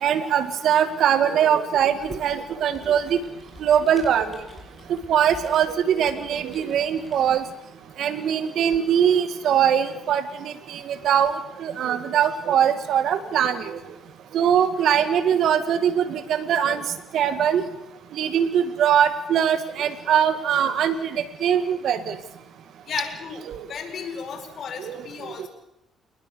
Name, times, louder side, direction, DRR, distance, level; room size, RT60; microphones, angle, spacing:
voice 1, 0.0-3.2 3.6-4.3 4.9-7.4 8.0-10.2 10.7-13.8 14.3-16.8 17.1-17.6 18.2-22.1 23.5-23.6 24.8-25.0, right 9 dB, 70° right, 12 dB, 2.1 m, -22 dB
Computer keyboard, 1.8-7.6, left 2 dB, 20° left, 7.9 m, -47 dB
voice 2, 22.9-23.4 23.7-25.5, left 6 dB, 55° left, 6 dB, 5.1 m, -33 dB
28.0 x 20.0 x 6.9 m, 0.87 s
cardioid pair, 100°, 0 cm